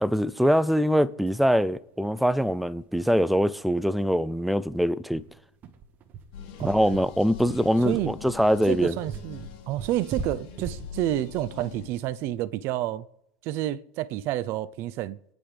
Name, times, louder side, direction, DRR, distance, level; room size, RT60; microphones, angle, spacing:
voice 1, 0.0-5.2 6.6-9.0, equal, ahead, 0.4 m, -23 dB
sound 1, 2.3-2.4 2.7-2.8 3.1-3.2 3.6-3.7 4.2-12.6, right 5 dB, 35° right, 1.5 m, -40 dB
sound 2, 6.3-12.4, left 8 dB, 65° left, 4.0 m, -43 dB
voice 2, 8.7-13.1 13.4-15.2, right 14 dB, 50° right, 0.6 m, -29 dB
27.5 x 10.0 x 3.4 m
supercardioid pair, 130°, 5 cm